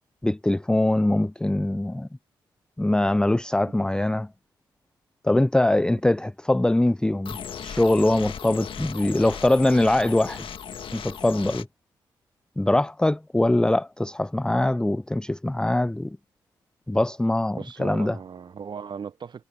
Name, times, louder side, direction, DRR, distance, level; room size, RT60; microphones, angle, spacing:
voice 1, 0.2-2.1 2.8-4.3 5.2-10.5 10.9-11.7 12.6-16.2 16.9-18.2, left 1 dB, 10° left, 0.4 m, -22 dB
sound 1, 7.2-11.6, left 8 dB, 65° left, 1.7 m, -37 dB
voice 2, 17.5-19.4, right 6 dB, 50° right, 1.0 m, -37 dB
hypercardioid pair, 40°, 10 cm